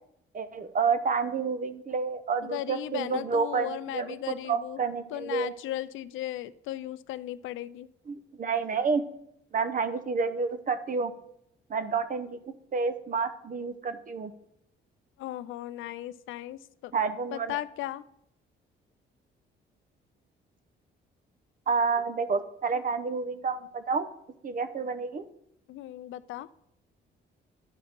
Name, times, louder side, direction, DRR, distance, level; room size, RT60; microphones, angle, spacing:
voice 1, 0.3-5.6 8.1-9.0 9.5-11.1 11.7-14.3 16.9-17.6 21.7-24.1 24.4-25.3, right 5 dB, 45° right, 11 dB, 0.9 m, -29 dB
voice 2, 2.4-4.8 5.1-7.9 15.2-16.9 17.3-18.0 25.7-26.5, left 14 dB, 80° left, 16 dB, 0.4 m, -36 dB
11.0 x 4.7 x 5.3 m, 0.78 s
cardioid pair, 90°, 20 cm